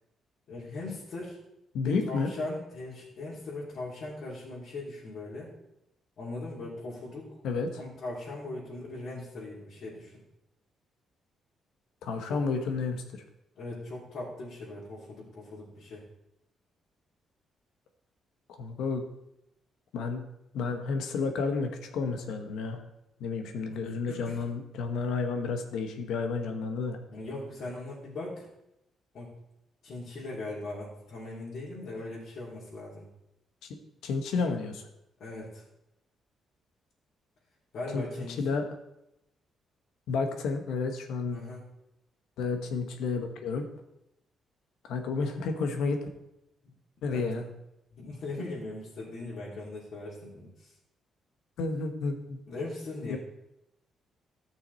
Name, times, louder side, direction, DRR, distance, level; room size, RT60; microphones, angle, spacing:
voice 1, 0.5-1.4 1.8-5.5 6.2-7.4 7.8-10.1 12.3-12.4 13.5-16.0 23.7-24.3 27.1-28.5 29.1-29.3 29.8-33.0 35.2-35.6 37.7-38.4 41.3-41.6 47.1-47.5 47.9-50.7 52.5-53.2, left 2 dB, 60° left, -9 dB, 3.5 m, -39 dB
voice 2, 1.7-2.3 7.4-7.7 12.0-13.2 18.5-19.0 19.9-20.2 20.5-22.8 23.2-27.0 34.0-34.9 37.9-38.6 40.1-41.4 42.4-43.6 44.9-46.1 47.0-47.4 51.6-52.4 53.0-53.2, left 4 dB, 85° left, 5 dB, 1.3 m, -31 dB
13.5 x 6.3 x 4.2 m, 0.85 s
cardioid pair, 110°, 0 cm